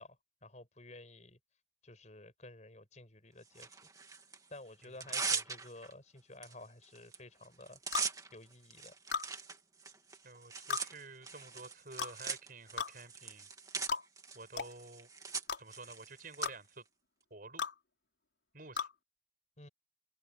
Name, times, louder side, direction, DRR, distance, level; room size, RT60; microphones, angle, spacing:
voice 1, 0.0-1.4 1.8-3.8 4.5-7.8 8.3-8.9 19.6-19.7, left 2 dB, 40° left, 5.9 m, -53 dB
Tearing, 3.6-4.4 4.8-5.9 6.4-6.5 6.8-7.2 7.4-16.5, right 5 dB, 20° right, 2.1 m, -41 dB
sound 1, 7.9-8.1 9.1-9.3 10.7-10.9 12.0-12.2 12.8-12.9 13.9-14.0 14.6-14.7 15.5-15.6 16.4-16.6 17.6-17.7 18.8-18.9, left 5 dB, 65° left, 4.5 m, -35 dB
voice 2, 10.2-13.5 14.3-15.1 15.6-16.8 17.3-17.7 18.5-18.9, right 3 dB, 50° right, 7.6 m, -50 dB
open air
head